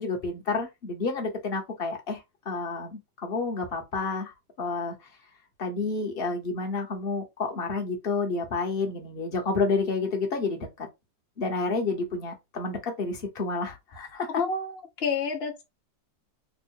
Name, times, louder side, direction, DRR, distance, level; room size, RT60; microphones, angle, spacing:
voice 1, 0.0-4.9 5.6-10.9 11.4-14.3, left 3 dB, 40° left, 1.0 m, -30 dB
voice 2, 14.4-15.6, left 4 dB, 75° left, 0.5 m, -29 dB
3.5 x 2.2 x 4.4 m
omnidirectional pair, 2.0 m